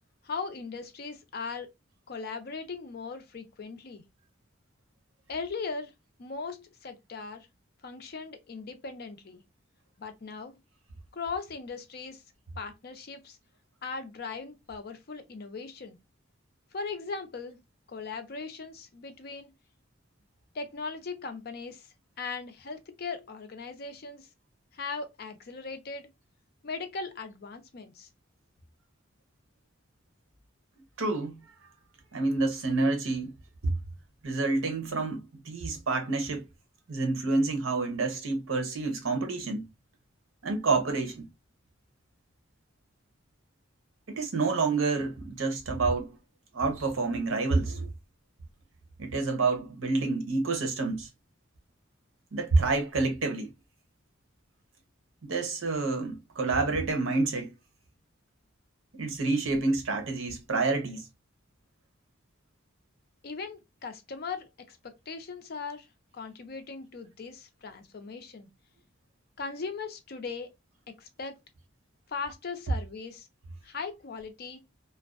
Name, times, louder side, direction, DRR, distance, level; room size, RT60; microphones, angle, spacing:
voice 1, 0.2-1.7 2.1-4.0 5.3-5.9 6.2-7.5 7.8-9.4 10.0-10.6 11.1-12.2 12.6-13.4 13.8-16.0 16.7-17.6 17.9-19.5 20.5-21.9 22.2-24.3 24.7-26.1 26.6-28.1 63.2-65.9 66.1-68.5 69.4-70.5 71.0-71.4 72.1-73.3 73.6-74.6, left 4 dB, 50° left, 0.5 m, -39 dB
voice 2, 31.0-31.4 32.1-33.3 33.6-33.8 34.2-36.4 36.9-39.6 40.4-41.3 44.1-46.2 46.5-47.9 49.0-51.1 52.3-53.5 55.2-57.5 58.9-61.1, right 3 dB, 85° right, 0.8 m, -28 dB
2.5 x 2.1 x 2.3 m
head